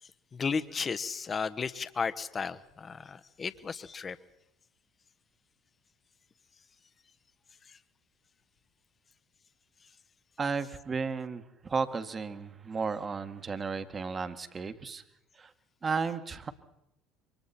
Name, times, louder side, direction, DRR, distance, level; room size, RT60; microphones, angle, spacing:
voice 1, 0.0-4.2 7.6-7.8, left 5 dB, 35° left, 1.2 m, -34 dB
voice 2, 10.4-15.0 15.4-15.5 15.8-16.5, right 5 dB, 30° right, 1.8 m, -34 dB
28.0 x 24.0 x 4.4 m
hypercardioid pair, 70°, 0 cm